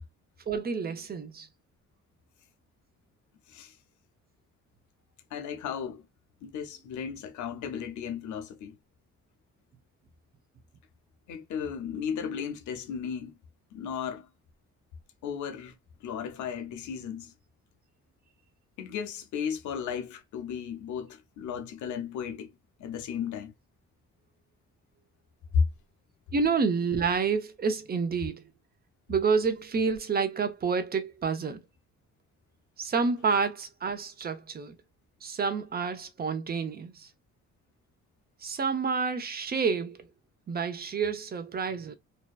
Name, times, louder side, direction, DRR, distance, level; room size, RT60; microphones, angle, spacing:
voice 1, 0.5-1.5 26.3-28.5 29.1-31.6 32.8-34.8 35.2-37.1 38.4-40.1 40.5-41.9, right 5 dB, 30° right, 0.6 m, -29 dB
voice 2, 5.3-6.0 6.4-8.7 11.3-13.3 13.7-14.3 15.2-15.7 16.0-17.3 18.8-22.5 22.8-23.5 25.5-25.6, left 7 dB, 75° left, 0.7 m, -34 dB
2.7 x 2.2 x 2.2 m
cardioid pair, 90°, 30 cm